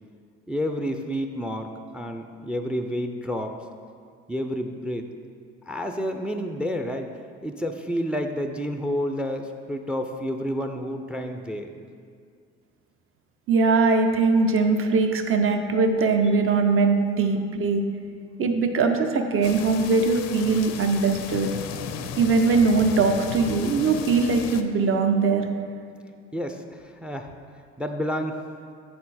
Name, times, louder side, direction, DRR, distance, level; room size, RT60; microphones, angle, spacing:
voice 1, 0.5-1.7 1.9-3.5 4.3-5.1 5.7-7.1 7.4-11.7 26.3-27.3 27.8-28.4, equal, 5° right, 6 dB, 0.4 m, -29 dB
voice 2, 13.5-17.8 18.4-21.5 22.0-25.5, right 4 dB, 45° right, 5 dB, 0.7 m, -21 dB
sound 1, 19.4-24.6, left 8 dB, 60° left, 0.5 m, -35 dB
7.3 x 4.3 x 4.2 m, 2.2 s
supercardioid pair, 65°, 30 cm